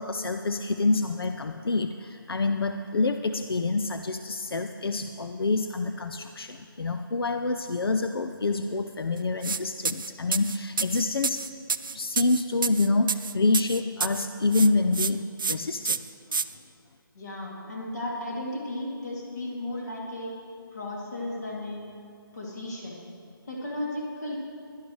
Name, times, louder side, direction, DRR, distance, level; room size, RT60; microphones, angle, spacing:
voice 1, 0.0-11.4 11.9-16.0, left 3 dB, 90° left, 7 dB, 0.6 m, -27 dB
sound 1, 9.4-9.6 9.8-14.3 14.5-15.1 15.4-15.5 15.8-16.4, right 5 dB, 65° right, 0.4 m, -28 dB
voice 2, 17.1-20.3 20.7-21.8 22.3-23.0 23.5-24.4, left 1 dB, 50° left, -3 dB, 2.6 m, -34 dB
16.5 x 11.5 x 3.2 m, 2.6 s
figure-of-eight pair, 170°, 12 cm